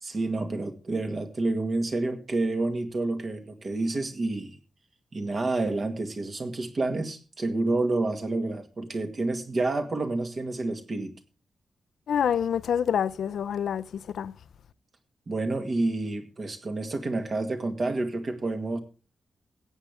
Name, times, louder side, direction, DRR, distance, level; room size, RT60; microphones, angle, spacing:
voice 1, 0.0-4.6 5.1-11.1 15.3-18.8, right 2 dB, 40° right, 1.9 m, -29 dB
voice 2, 12.1-14.3, left 8 dB, 80° left, 0.5 m, -27 dB
17.0 x 8.3 x 3.5 m
wide cardioid pair, 140°, 0 cm